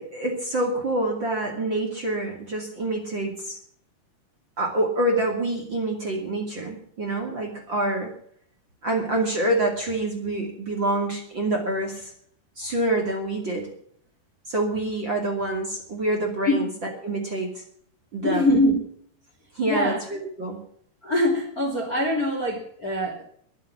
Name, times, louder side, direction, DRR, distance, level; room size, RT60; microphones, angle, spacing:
voice 1, 0.0-3.6 4.6-8.1 8.8-12.1 12.6-13.7 14.5-17.6 18.1-18.5 19.5-20.6, right 1 dB, 35° right, 2 dB, 2.8 m, -26 dB
voice 2, 18.2-18.9 19.7-20.0 21.0-23.2, left 1 dB, 25° left, 2 dB, 2.6 m, -23 dB
21.5 x 7.6 x 7.4 m, 0.63 s
omnidirectional pair, 4.6 m